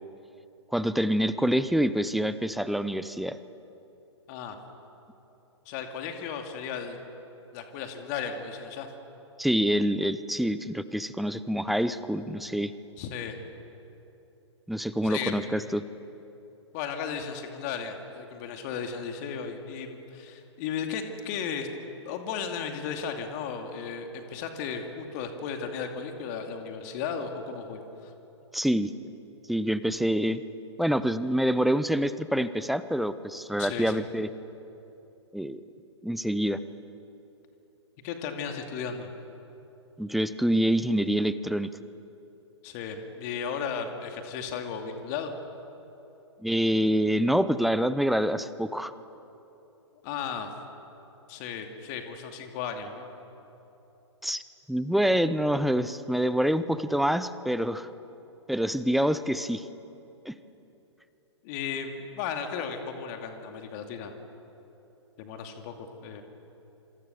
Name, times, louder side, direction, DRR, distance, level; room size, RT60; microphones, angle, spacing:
voice 1, 0.7-3.4 9.4-12.7 14.7-15.8 28.5-28.9 29.5-30.4 30.8-34.3 35.3-35.6 36.0-36.6 40.0-41.7 46.4-48.9 54.2-54.4 54.7-57.9 58.5-59.6 60.3-60.4, equal, ahead, 14 dB, 0.7 m, -26 dB
voice 2, 5.7-7.0 7.5-8.9 13.0-13.4 15.0-15.5 16.7-21.7 22.1-28.1 33.6-34.0 38.0-39.1 42.6-45.3 50.0-50.5 51.3-53.1 61.4-64.1 65.2-65.7 66.0-66.2, left 6 dB, 35° left, 4 dB, 2.6 m, -35 dB
26.5 x 26.5 x 7.0 m, 3.0 s
figure-of-eight pair, 115°, 15 cm